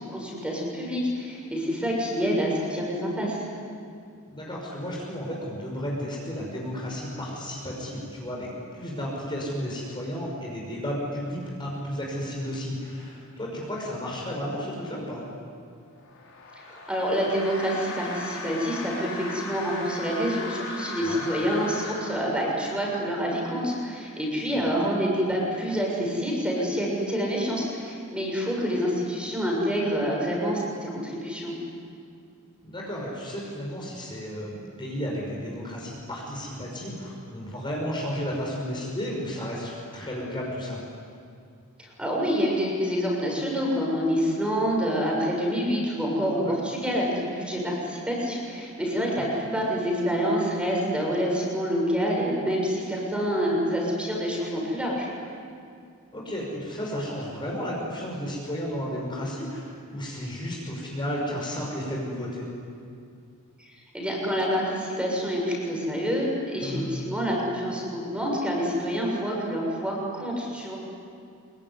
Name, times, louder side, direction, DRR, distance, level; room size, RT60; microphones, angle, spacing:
voice 1, 0.1-3.5 16.7-31.6 41.8-55.1 63.6-70.8, equal, 5° right, -2 dB, 6.9 m, -27 dB
voice 2, 4.3-8.5 8.8-15.2 21.0-21.3 24.7-24.8 32.6-40.8 46.4-46.6 49.2-49.3 56.1-62.5 66.6-66.9, equal, 20° left, -3 dB, 5.7 m, -33 dB
sound 1, 16.0-23.0, left 2 dB, 60° left, 6.0 m, -37 dB
25.5 x 24.0 x 9.7 m, 2.4 s
head